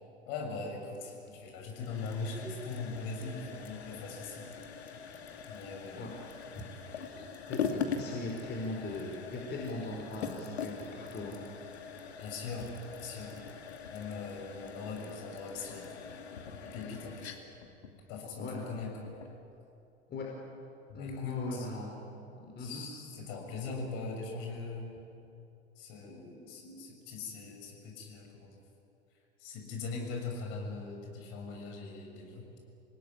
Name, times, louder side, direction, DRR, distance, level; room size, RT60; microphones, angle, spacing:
voice 1, 0.3-4.5 5.5-6.1 12.2-13.4 13.9-16.2 16.6-17.3 18.1-19.1 20.9-21.7 22.6-25.0 25.8-28.6 29.4-32.4, left 4 dB, 50° left, 1 dB, 7.0 m, -41 dB
sound 1, 1.7-19.4, left 6 dB, 70° left, 2.6 m, -42 dB
voice 2, 7.5-11.4 18.4-18.6 20.1-20.3 20.9-21.9 22.4-22.8, left 2 dB, 30° left, -1 dB, 4.8 m, -39 dB
27.0 x 18.5 x 9.9 m, 2.8 s
figure-of-eight pair, 85°, 33 cm